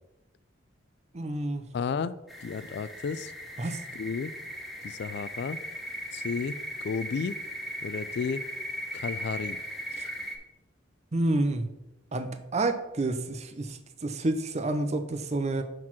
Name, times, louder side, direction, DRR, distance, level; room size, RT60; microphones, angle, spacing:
voice 1, 1.1-1.6 3.6-3.8 10.0-10.1 11.1-11.7 12.1-15.6, right 2 dB, 35° right, 8 dB, 0.6 m, -29 dB
voice 2, 1.7-2.1 2.4-3.3 3.9-4.3 4.8-5.6 6.1-6.6 6.8-7.4 7.8-8.4 8.9-9.6, left 5 dB, 55° left, 16 dB, 0.3 m, -32 dB
sound 1, 2.3-10.4, equal, ahead, 1.0 m, -38 dB
6.1 x 4.5 x 5.9 m, 0.97 s
head